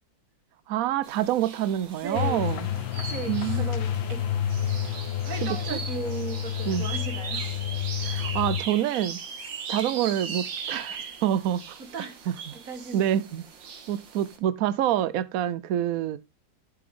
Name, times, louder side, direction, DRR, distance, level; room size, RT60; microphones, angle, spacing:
voice 1, 0.7-2.7 3.3-3.7 5.4-5.6 6.6-6.9 8.0-9.2 9.7-11.8 12.3-12.4 12.9-13.4 13.9-16.2, right 11 dB, 85° right, 0.7 m, -27 dB
sound 1, 1.0-14.4, right 6 dB, 70° right, 2.1 m, -39 dB
voice 2, 2.0-2.5 3.0-4.3 5.2-7.5 11.8-12.2 12.5-13.1, right 5 dB, 45° right, 1.7 m, -36 dB
sound 2, 2.1-8.6, left 10 dB, 75° left, 1.6 m, -29 dB
11.5 x 6.8 x 3.6 m
omnidirectional pair, 2.2 m